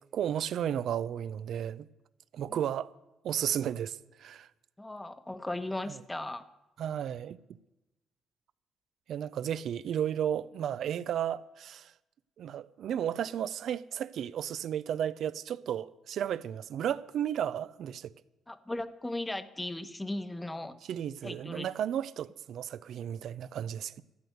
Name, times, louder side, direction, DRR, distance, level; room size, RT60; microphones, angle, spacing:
voice 1, 0.0-1.9 2.3-2.9 3.2-4.5 5.9-6.0 6.8-7.4 9.1-11.9 12.4-18.1 20.9-24.0, right 9 dB, 70° right, 0.5 m, -33 dB
voice 2, 4.8-6.5 18.5-20.8 21.2-21.7, left 1 dB, 10° left, 0.9 m, -37 dB
13.5 x 9.3 x 8.0 m
cardioid pair, 90°, 0 cm